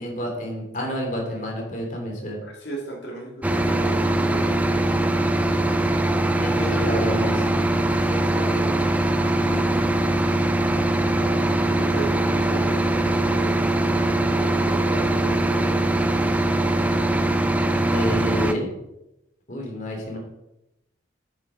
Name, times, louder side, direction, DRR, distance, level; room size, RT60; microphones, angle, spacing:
voice 1, 0.0-2.4 6.3-7.3 9.5-9.7 17.8-18.7 19.5-20.2, equal, 40° left, 0 dB, 3.0 m, -29 dB
voice 2, 2.4-5.6 6.5-7.4 8.0-8.9 11.1-13.9 14.3-16.3 20.1-20.2, right 2 dB, 65° left, -2 dB, 2.5 m, -36 dB
sound 1, 3.4-18.5, right 1 dB, 10° right, 0.6 m, -22 dB
9.6 x 9.0 x 4.9 m, 0.89 s
head